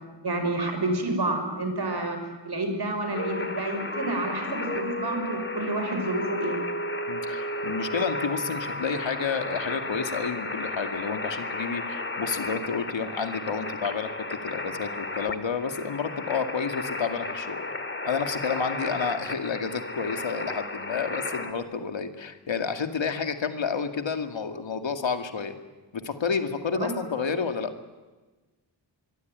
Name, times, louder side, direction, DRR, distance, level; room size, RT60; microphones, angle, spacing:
voice 1, 0.2-2.2 2.4-6.6 26.7-26.9, right 2 dB, 60° right, 6 dB, 5.9 m, -29 dB
sound 1, 3.1-21.5, left 2 dB, 25° left, 2.1 m, -33 dB
voice 2, 7.1-17.7 18.0-25.5 25.9-27.7, left 5 dB, 80° left, 7 dB, 2.4 m, -30 dB
25.5 x 22.5 x 9.5 m, 1.2 s
wide cardioid pair, 105°, 45 cm